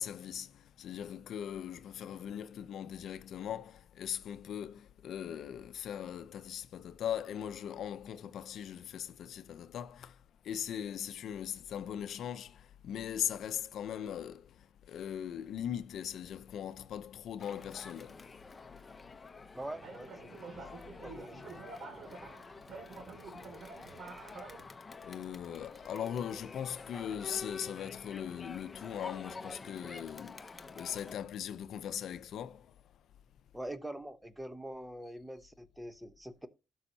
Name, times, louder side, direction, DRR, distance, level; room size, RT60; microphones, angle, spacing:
voice 1, 0.0-10.2 10.4-18.3 25.0-32.7, left 9 dB, 70° left, 0.6 m, -40 dB
Crowd, 17.4-31.1, left 4 dB, 25° left, 0.8 m, -49 dB
voice 2, 19.5-20.7 21.0-21.5 21.8-22.3 33.5-36.5, right 1 dB, 10° right, 0.9 m, -45 dB
sound 1, 19.6-24.6, right 4 dB, 65° right, 2.3 m, -48 dB
12.5 x 6.3 x 2.8 m
cardioid pair, 90°, 0 cm